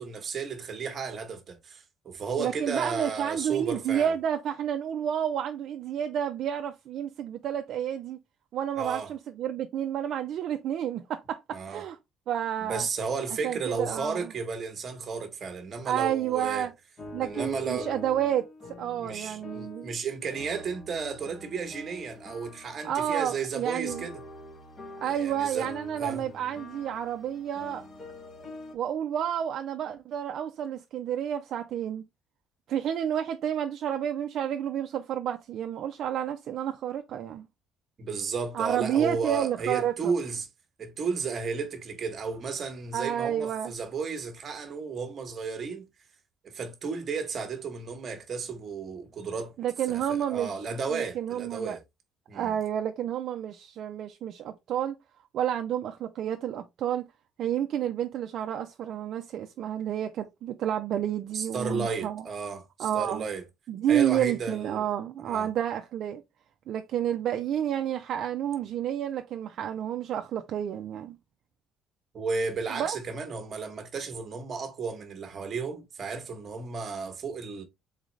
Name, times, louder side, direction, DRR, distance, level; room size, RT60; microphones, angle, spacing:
voice 1, 0.0-4.1 8.8-9.1 11.5-11.8 12.6-16.7 17.2-17.9 19.0-24.2 25.0-25.7 26.0-26.2 38.0-40.5 40.8-45.9 46.4-49.5 49.9-51.8 52.3-52.5 61.3-63.4 63.9-64.9 65.3-65.5 72.1-77.6, right 5 dB, 30° right, 1.0 m, -33 dB
voice 2, 2.4-8.2 8.5-12.0 12.3-12.9 13.4-14.3 15.8-16.7 17.1-18.5 18.8-19.9 22.8-24.0 25.0-27.8 28.7-32.0 32.7-37.5 38.5-40.1 42.9-43.7 49.6-51.8 52.3-54.9 55.3-57.1 57.4-62.2 62.8-63.2 63.7-66.2 66.7-71.2 72.7-73.0, right 10 dB, 45° right, 0.4 m, -30 dB
sound 1, 17.0-20.0 20.3-28.7, left 1 dB, 25° left, 1.1 m, -45 dB
4.0 x 3.8 x 3.1 m
cardioid pair, 180°, 0 cm